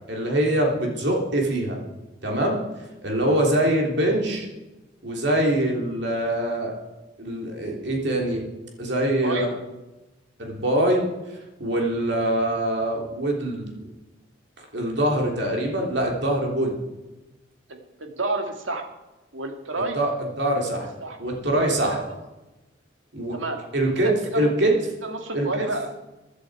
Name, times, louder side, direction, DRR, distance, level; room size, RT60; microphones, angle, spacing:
voice 1, 0.1-1.8 2.2-2.6 3.0-4.5 5.0-6.7 7.2-8.4 8.8-9.5 10.4-11.1 11.6-13.7 14.7-16.8 19.8-20.9 21.2-22.0 23.1-23.4 23.7-24.7 25.3-25.7, right 1 dB, 60° right, 0 dB, 3.2 m, -23 dB
voice 2, 9.0-9.5 17.7-18.8 19.3-20.0 21.0-21.2 21.9-22.1 23.3-23.6 24.0-24.5 25.0-25.9, right 2 dB, 80° right, 4 dB, 2.1 m, -30 dB
15.5 x 10.5 x 4.8 m, 1.1 s
head